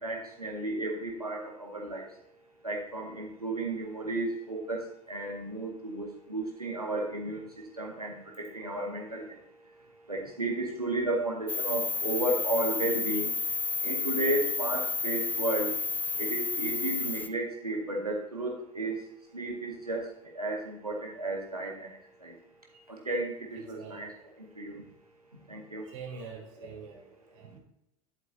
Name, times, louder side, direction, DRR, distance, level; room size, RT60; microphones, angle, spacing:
voice 1, 0.0-2.0 2.6-4.8 5.1-7.4 7.8-9.2 10.1-13.3 13.8-15.7 16.2-19.0 19.3-20.0 20.4-21.7 22.2-22.3 23.1-23.3 23.7-24.1 24.6-24.8 25.5-25.8, right 2 dB, 85° right, 0 dB, 1.8 m, -33 dB
sound 1, 11.5-17.3, left 4 dB, 10° left, 0.5 m, -31 dB
voice 2, 23.7-24.1 25.8-27.0 27.3-27.6, right 5 dB, 55° right, 0 dB, 2.9 m, -44 dB
11.5 x 7.7 x 2.7 m, 0.80 s
figure-of-eight pair, 80°, 19 cm